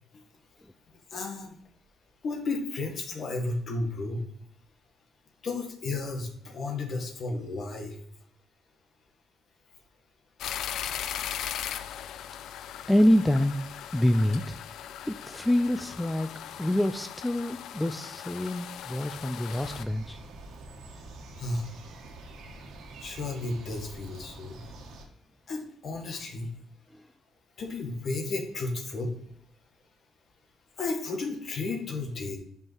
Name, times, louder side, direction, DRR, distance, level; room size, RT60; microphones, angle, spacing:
voice 1, 0.9-1.6 2.2-4.2 5.4-8.0 21.4-21.7 23.0-24.6 25.5-26.5 27.6-29.1 30.8-32.4, left 3 dB, 60° left, 3 dB, 1.6 m, -33 dB
sound 1, 10.4-19.8, left 10 dB, 80° left, 0.4 m, -38 dB
voice 2, 12.9-13.6 13.9-14.6 15.1-16.3 16.6-20.2, left 1 dB, 10° left, 8 dB, 0.4 m, -26 dB
sound 2, 19.5-25.1, right 2 dB, 80° right, 1.3 m, -46 dB
5.6 x 5.3 x 4.6 m, 0.71 s
cardioid pair, 90°, 0 cm